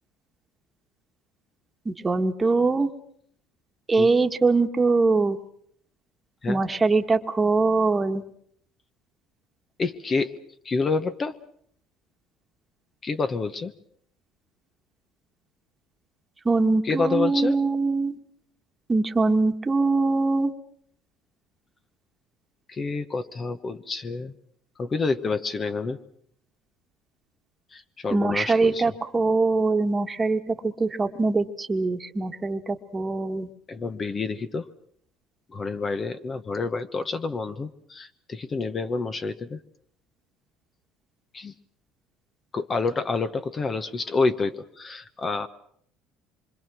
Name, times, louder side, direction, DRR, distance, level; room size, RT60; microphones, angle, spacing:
voice 1, 1.8-2.9 3.9-5.4 6.5-8.2 16.4-18.2 18.9-20.5 28.1-33.5, right 3 dB, 20° right, 6 dB, 1.5 m, -23 dB
voice 2, 9.8-10.3 10.6-11.4 13.0-13.7 16.8-17.6 22.7-24.3 24.8-26.0 27.7-28.9 33.7-34.7 35.5-39.6 41.3-41.5 42.5-45.5, left 4 dB, 30° left, 11 dB, 1.1 m, -28 dB
26.0 x 24.5 x 6.2 m, 0.66 s
supercardioid pair, 105°, 0 cm